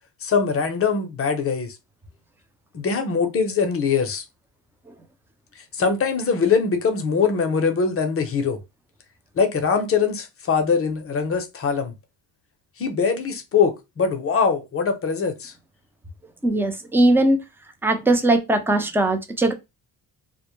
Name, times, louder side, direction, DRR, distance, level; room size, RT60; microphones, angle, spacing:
voice 1, 0.2-1.8 2.7-4.2 5.8-8.6 9.4-11.9 12.8-15.5, left 5 dB, 35° left, 0.7 m, -22 dB
voice 2, 16.4-17.4 17.8-19.5, right 1 dB, 5° right, 0.4 m, -19 dB
2.1 x 2.0 x 3.0 m
cardioid pair, 85°, 40 cm